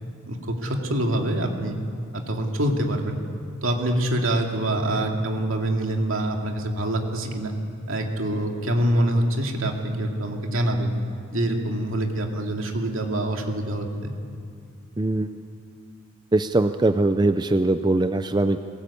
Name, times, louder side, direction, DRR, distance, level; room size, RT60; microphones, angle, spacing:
voice 1, 0.3-1.8 2.1-3.2 3.6-7.5 7.9-10.9 11.3-14.1, right 1 dB, 70° right, 2 dB, 2.6 m, -25 dB
voice 2, 15.0-15.3 16.3-18.6, right 2 dB, 20° right, 9 dB, 0.5 m, -21 dB
21.5 x 19.0 x 8.5 m, 2.3 s
head